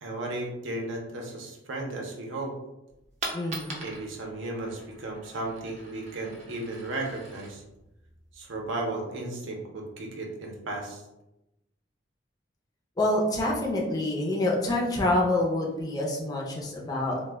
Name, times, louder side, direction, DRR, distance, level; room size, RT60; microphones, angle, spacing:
voice 1, 0.0-2.5 3.8-7.6 8.3-11.0, right 2 dB, 80° right, 0 dB, 0.6 m, -35 dB
Coin (dropping), 2.9-8.9, right 2 dB, 35° right, 0.5 m, -43 dB
voice 2, 3.3-3.8 13.0-17.2, left 1 dB, 20° left, -2 dB, 0.4 m, -27 dB
2.1 x 2.1 x 3.3 m, 0.92 s
head